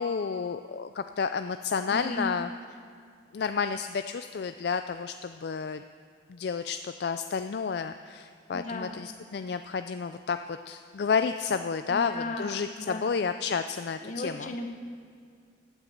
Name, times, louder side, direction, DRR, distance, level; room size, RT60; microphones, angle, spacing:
voice 1, 0.0-2.5 3.3-5.8 6.3-14.5, left 5 dB, 60° left, 9 dB, 0.4 m, -31 dB
voice 2, 1.9-2.3 8.5-9.0 11.9-12.5 12.8-13.1 14.0-14.7, left 2 dB, 40° left, 4 dB, 1.2 m, -35 dB
16.0 x 9.0 x 6.5 m, 2.3 s
head